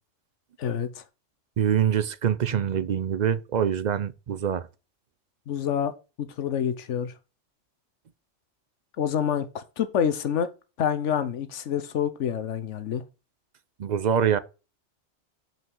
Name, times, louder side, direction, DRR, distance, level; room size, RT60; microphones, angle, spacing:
voice 1, 0.6-1.0 5.5-5.9 6.2-7.1 9.0-10.5 10.8-13.0, left 8 dB, 75° left, 1.2 m, -27 dB
voice 2, 1.6-4.7 13.8-14.4, right 8 dB, 50° right, 0.5 m, -24 dB
5.9 x 5.7 x 5.3 m
omnidirectional pair, 1.2 m